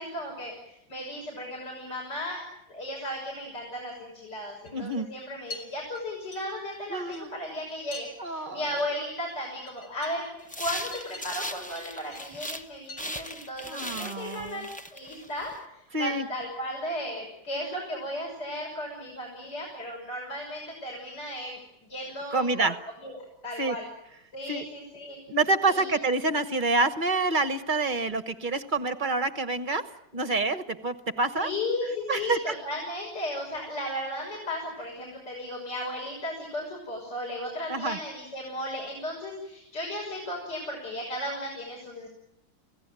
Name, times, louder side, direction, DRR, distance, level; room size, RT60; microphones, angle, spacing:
voice 1, 0.0-10.3 10.6-14.6 14.9-21.6 21.9-22.7 23.0-23.2 23.4-23.9 24.3-25.2 25.7-25.9 31.4-42.1, left 1 dB, 55° left, 0 dB, 6.9 m, -35 dB
sound 1, 4.6-4.9 5.2-5.6 5.9-8.1 8.4-8.5 8.7-8.9 9.2-11.4 11.8-12.3 12.9-13.1 13.4-13.7, left 3 dB, 90° left, 5.3 m, -46 dB
voice 2, 4.7-5.1 6.9-7.3 8.2-8.7 13.7-14.7 15.9-16.3 22.3-22.8 23.6-23.7 24.5-24.6 25.3-29.8 30.1-31.5 32.1-32.5 37.7-38.0, right 3 dB, 30° right, 10 dB, 1.0 m, -27 dB
sound 2, 10.4-12.7 13.0-15.6, equal, 10° left, 0.4 m, -38 dB
28.0 x 17.0 x 9.1 m, 0.88 s
omnidirectional pair, 2.2 m